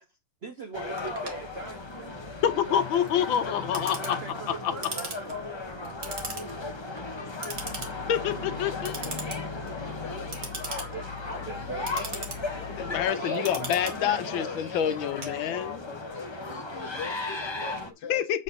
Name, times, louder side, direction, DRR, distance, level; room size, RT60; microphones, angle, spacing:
voice 1, 0.1-2.2 2.7-4.8 10.7-12.1 12.9-14.6, right 3 dB, 80° right, 0.5 m, -42 dB
sound 1, 0.7-17.9, left 2 dB, 30° left, 0.5 m, -36 dB
Clock, 1.0-15.9, right 3 dB, 50° right, 2.1 m, -41 dB
voice 2, 2.4-4.2 4.6-4.7 8.1-9.0 12.8-15.8 18.1-18.4, left 9 dB, 85° left, 1.5 m, -27 dB
voice 3, 3.2-4.2 6.6-7.3 8.7-11.5 12.5-14.6 14.9-18.2, left 7 dB, 60° left, 1.6 m, -43 dB
sound 2, 7.5-13.1, left 10 dB, 35° right, 1.3 m, -43 dB
7.5 x 4.2 x 5.4 m
omnidirectional pair, 2.1 m